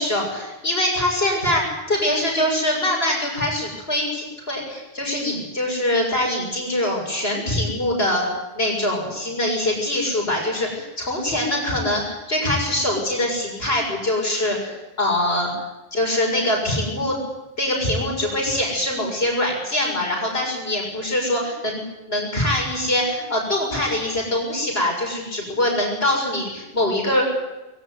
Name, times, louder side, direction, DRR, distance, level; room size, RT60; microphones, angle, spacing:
voice 1, 0.0-8.3 8.5-15.5 15.9-17.2 17.6-27.2, left 1 dB, 75° left, 0 dB, 6.9 m, -23 dB
23.0 x 16.5 x 9.4 m, 1.0 s
omnidirectional pair, 1.0 m